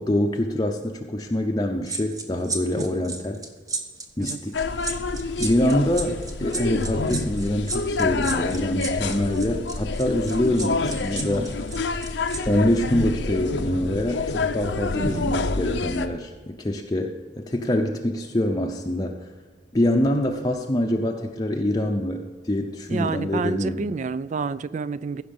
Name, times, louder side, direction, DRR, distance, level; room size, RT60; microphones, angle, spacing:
voice 1, 0.0-3.4 4.2-4.7 5.4-11.6 12.5-19.2 19.7-23.9, left 1 dB, 20° left, 2 dB, 0.6 m, -25 dB
sound 1, 1.9-12.4 12.7-12.9, right 3 dB, 20° right, 1.1 m, -33 dB
voice 2, 2.8-3.1 4.2-4.4 15.0-15.4 22.9-25.2, right 4 dB, 40° right, 17 dB, 0.3 m, -29 dB
sound 2, 4.5-16.1, left 3 dB, 75° left, 0.7 m, -27 dB
15.5 x 6.0 x 5.4 m, 1.4 s
head